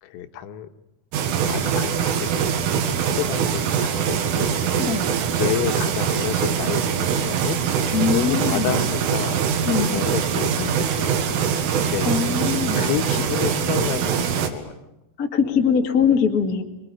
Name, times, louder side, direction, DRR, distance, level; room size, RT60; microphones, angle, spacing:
voice 1, 0.0-0.7 1.5-2.5 2.7-4.9 5.3-7.6 8.1-9.4 9.8-12.1 12.8-14.8, left 12 dB, 85° left, 7 dB, 3.9 m, -30 dB
sound 1, 1.1-14.5, right 7 dB, 80° right, 4.5 m, -23 dB
voice 2, 4.8-5.1 7.9-8.8 9.7-10.0 12.0-12.9 15.2-16.6, left 6 dB, 55° left, 3 dB, 0.9 m, -22 dB
26.5 x 22.0 x 9.8 m, 0.91 s
omnidirectional pair, 5.8 m